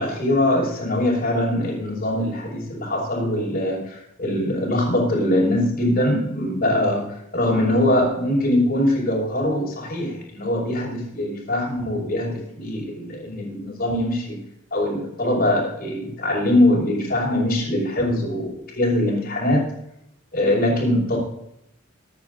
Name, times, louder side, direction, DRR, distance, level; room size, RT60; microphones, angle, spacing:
voice 1, 0.0-14.4 14.7-19.7 20.3-21.2, left 1 dB, 50° left, -8 dB, 5.6 m, -22 dB
25.0 x 10.5 x 2.7 m, 0.78 s
head